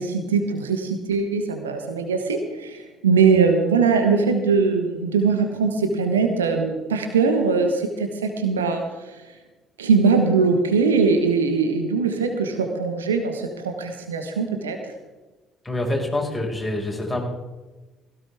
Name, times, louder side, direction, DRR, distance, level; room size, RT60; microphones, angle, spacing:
voice 1, 0.0-8.8 9.8-14.8, right 5 dB, 80° right, 5 dB, 1.3 m, -21 dB
voice 2, 15.6-17.2, left 1 dB, 10° left, -1 dB, 5.4 m, -26 dB
16.5 x 14.0 x 3.6 m, 1.2 s
figure-of-eight pair, 50°, 0 cm